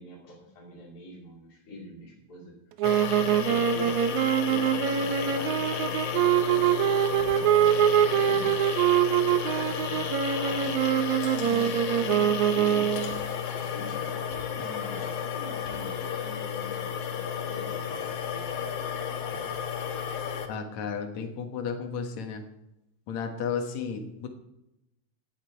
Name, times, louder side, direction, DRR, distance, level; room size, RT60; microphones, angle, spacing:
voice 1, 0.0-2.5 3.1-3.9 4.4-8.6 9.2-13.1 13.7-18.8, left 1 dB, 30° left, -3 dB, 3.2 m, -45 dB
sound 1, 2.8-20.5, left 8 dB, 85° left, 2.9 m, -32 dB
sound 2, 2.8-13.2, right 11 dB, 80° right, 2.2 m, -24 dB
voice 2, 20.5-22.4 23.1-24.3, left 6 dB, 70° left, 5 dB, 2.7 m, -33 dB
16.5 x 11.0 x 4.6 m, 0.89 s
omnidirectional pair, 3.4 m